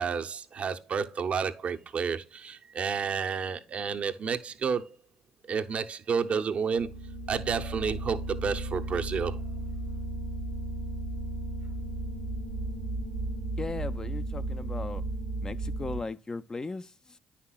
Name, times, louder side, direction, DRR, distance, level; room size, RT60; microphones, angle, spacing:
voice 1, 0.0-4.9 5.5-6.9 7.3-9.4, right 6 dB, 50° right, 0.7 m, -30 dB
sound 1, 6.8-16.0, right 2 dB, 75° right, 1.0 m, -34 dB
voice 2, 13.6-15.0 15.4-17.2, left 3 dB, 25° left, 0.5 m, -37 dB
9.5 x 5.7 x 2.3 m
supercardioid pair, 65°, 3 cm